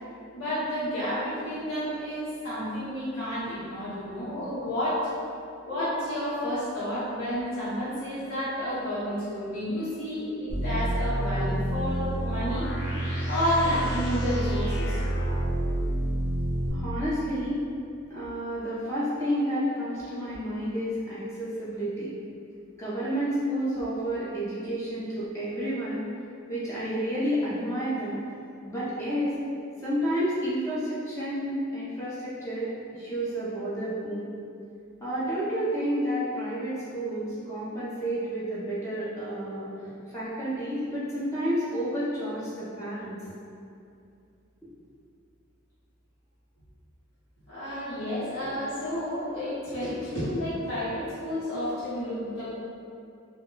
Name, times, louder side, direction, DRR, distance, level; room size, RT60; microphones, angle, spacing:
voice 1, 0.3-5.0 5.6-12.7 13.3-15.0 47.5-52.6, equal, 85° left, -12 dB, 1.0 m, -30 dB
sound 1, 10.5-16.7, right 1 dB, 50° left, 0.9 m, -28 dB
voice 2, 16.7-17.6 18.1-22.1 22.8-26.0 26.5-28.2 28.7-29.3 29.8-34.3 35.0-39.7 40.1-43.2, equal, 15° left, -10 dB, 0.4 m, -30 dB
2.1 x 2.1 x 3.7 m, 2.5 s
head